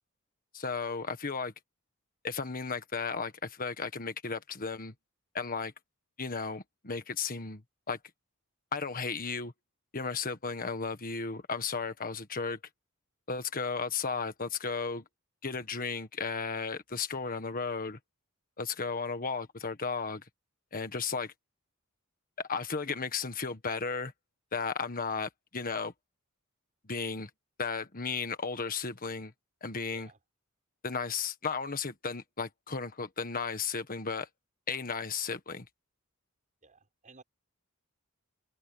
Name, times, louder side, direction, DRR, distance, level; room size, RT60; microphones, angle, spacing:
voice 1, 0.5-1.5 2.2-4.9 5.3-5.7 6.2-7.6 7.9-8.0 8.7-9.5 9.9-12.6 13.3-15.0 15.4-18.0 18.6-20.2 20.7-21.3 22.4-24.1 24.5-25.9 26.8-27.3 27.6-29.3 29.6-30.1 30.8-34.3 34.7-35.7, left 5 dB, 40° left, 1.6 m, -34 dB
voice 2, 36.6-37.2, right 4 dB, 35° right, 5.6 m, -56 dB
head